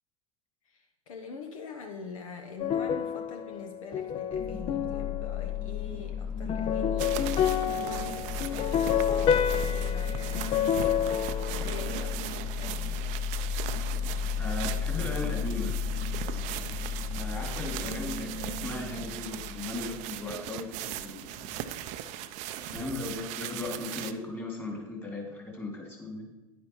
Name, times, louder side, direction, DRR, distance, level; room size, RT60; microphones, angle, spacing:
voice 1, 0.6-7.3 7.7-12.9, left 4 dB, 65° left, 4 dB, 1.0 m, -44 dB
sound 1, 2.6-5.7 6.5-12.1, left 8 dB, 30° left, 0.5 m, -29 dB
sound 2, 4.3-20.2, left 6 dB, 45° left, 1.3 m, -34 dB
sound 3, 7.0-24.1, right 12 dB, 40° right, 0.6 m, -39 dB
voice 2, 14.4-15.8 17.1-21.6 22.6-26.3, left 3 dB, 10° left, -1 dB, 2.7 m, -37 dB
10.0 x 9.4 x 3.1 m, 1.1 s
figure-of-eight pair, 90°, 19 cm